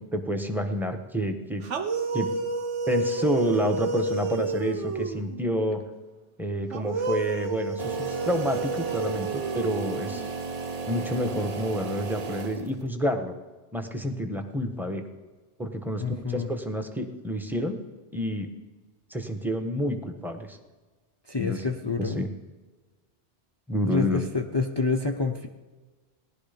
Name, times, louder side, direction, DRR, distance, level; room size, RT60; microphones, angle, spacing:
voice 1, 0.0-1.6 2.1-2.3 2.9-5.8 6.4-10.3 10.9-13.3 13.7-15.1 15.6-17.8 18.1-18.5 19.1-20.6 21.4-21.6 22.0-22.3 23.7-24.2, equal, ahead, 5 dB, 1.2 m, -29 dB
sound 1, 1.6-5.4 6.7-10.3, right 3 dB, 80° right, 1.3 m, -30 dB
electric air compressor close mono, 7.8-12.9, right 4 dB, 40° right, 0.7 m, -34 dB
voice 2, 16.0-16.6 21.3-22.2 23.8-25.5, left 4 dB, 25° left, 4 dB, 0.7 m, -28 dB
18.5 x 11.5 x 5.2 m, 1.3 s
omnidirectional pair, 1.2 m